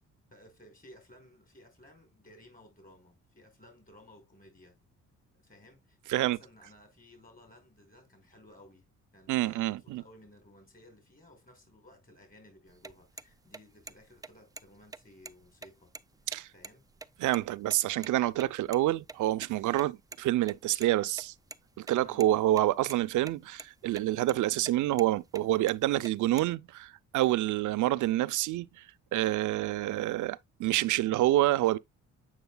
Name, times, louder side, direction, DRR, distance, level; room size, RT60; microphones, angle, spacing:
voice 1, 0.3-4.8 5.3-8.9 9.1-15.9 16.5-16.8 22.0-22.3, left 1 dB, 30° left, 5.3 m, -57 dB
voice 2, 9.3-10.0 16.3-16.5 17.2-21.3 21.8-28.7 29.1-31.8, right 15 dB, 75° right, 0.6 m, -27 dB
sound 1, 12.7-17.8 18.0-18.1 18.4-18.5 18.7-18.8 19.1-19.2 19.4-19.5 19.8-20.9 21.1-21.6 21.9-22.6 22.9-23.3 23.6-24.0 24.3-24.4 24.7-25.1 25.3-26.5, right 3 dB, 10° right, 0.4 m, -45 dB
8.0 x 6.2 x 2.2 m
cardioid pair, 90°, 30 cm